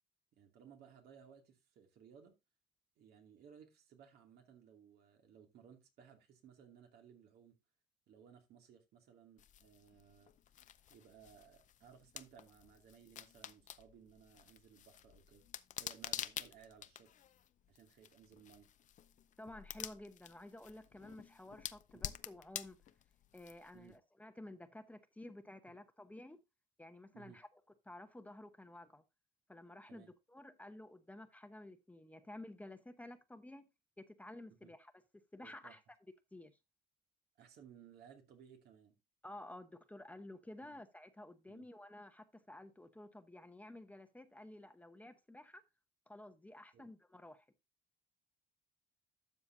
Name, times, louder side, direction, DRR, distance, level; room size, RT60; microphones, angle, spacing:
voice 1, 0.3-2.3 3.0-7.5 8.1-10.3 10.9-15.5 15.8-17.1 17.7-18.7 23.7-24.0 27.1-27.4 29.9-30.1 34.6-34.7 35.4-35.8 37.4-39.0 40.6-40.8 41.5-41.6 46.7-46.9, right 8 dB, 70° right, 2.5 m, -61 dB
sound 1, 9.4-23.9, left 10 dB, 50° left, 0.6 m, -49 dB
voice 2, 19.4-22.8 23.3-26.4 26.8-27.5 27.8-29.0 29.5-33.6 34.0-34.9 35.3-35.8 36.3-36.6 39.2-45.6 46.1-47.4, left 1 dB, 10° left, 0.9 m, -53 dB
12.5 x 6.8 x 2.7 m
cardioid pair, 110°, 17 cm